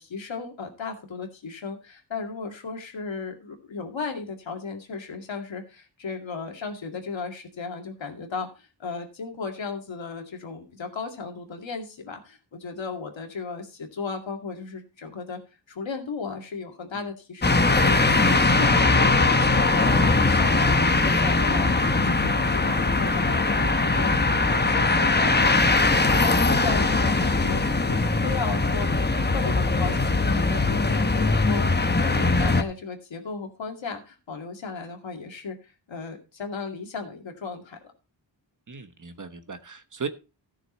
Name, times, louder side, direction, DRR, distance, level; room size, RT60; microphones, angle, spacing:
voice 1, 0.0-15.4 15.7-20.0 20.3-25.4 26.0-37.8, left 4 dB, 90° left, 2.4 m, -35 dB
sound 1, 17.4-32.6, left 3 dB, 25° left, 0.9 m, -21 dB
voice 2, 38.7-40.1, right 5 dB, 45° right, 1.2 m, -36 dB
14.5 x 6.5 x 4.3 m
wide cardioid pair, 90°, 44 cm